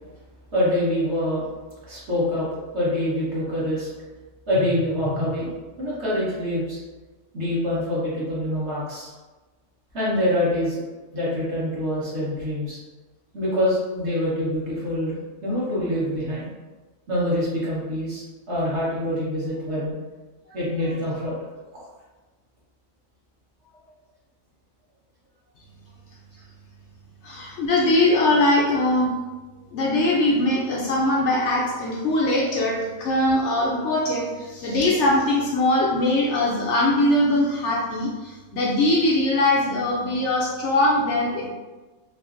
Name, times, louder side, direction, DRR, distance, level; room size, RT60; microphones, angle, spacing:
voice 1, 0.5-1.5 1.9-3.9 4.5-5.5 5.8-6.8 7.3-9.1 9.9-10.8 11.1-12.8 13.3-16.5 17.1-20.0 20.5-21.3, left 1 dB, 55° right, -8 dB, 1.4 m, -25 dB
voice 2, 27.2-29.1 29.7-41.5, left 1 dB, 65° left, -3 dB, 0.8 m, -21 dB
3.2 x 2.9 x 2.4 m, 1.2 s
omnidirectional pair, 1.4 m